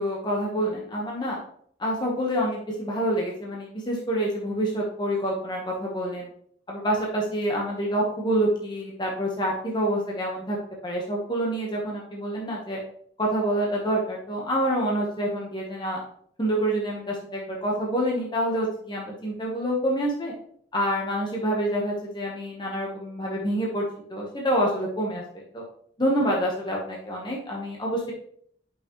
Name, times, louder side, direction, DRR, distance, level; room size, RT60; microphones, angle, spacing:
voice 1, 0.0-1.4 1.8-6.3 6.7-10.6 10.8-12.8 13.2-16.0 16.4-20.3 20.7-25.6 26.0-28.1, right 1 dB, 25° left, -3 dB, 1.2 m, -27 dB
8.6 x 5.9 x 3.1 m, 0.64 s
head